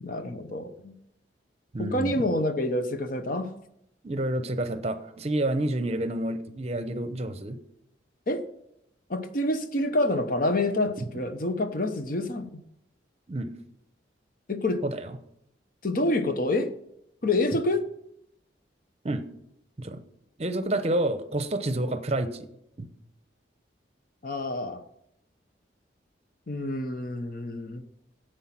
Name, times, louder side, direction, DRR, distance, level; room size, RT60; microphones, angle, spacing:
voice 1, 0.0-0.9 1.8-3.5 8.3-8.4 9.1-12.6 14.5-14.8 15.8-16.7 17.2-17.8 24.2-24.8 26.5-27.8, left 1 dB, 50° left, 0.9 m, -27 dB
voice 2, 1.7-2.2 4.0-7.6 11.0-11.1 13.3-13.5 14.8-15.2 19.0-19.2 19.8-20.0 20.4-22.5 22.8-22.9, right 1 dB, 35° right, 0.8 m, -29 dB
10.0 x 7.9 x 5.8 m
head